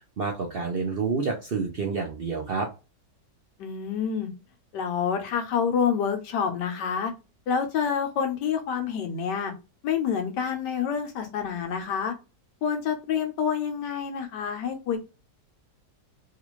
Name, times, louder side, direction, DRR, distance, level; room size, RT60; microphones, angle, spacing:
voice 1, 0.0-2.7, right 4 dB, 60° right, 0.6 m, -29 dB
voice 2, 3.6-4.3 4.7-7.1 7.5-9.5 9.8-12.1 12.6-15.0, left 7 dB, 90° left, 1.5 m, -27 dB
3.6 x 2.4 x 3.0 m
omnidirectional pair, 1.8 m